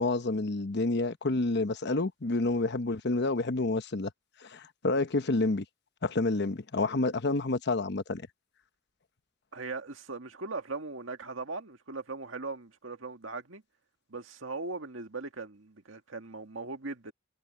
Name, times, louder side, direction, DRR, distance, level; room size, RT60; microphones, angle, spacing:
voice 1, 0.0-4.1 4.4-5.6 6.0-8.2, left 2 dB, 60° left, 1.0 m, -29 dB
voice 2, 9.5-13.6 14.1-17.1, right 3 dB, 85° right, 1.9 m, -39 dB
head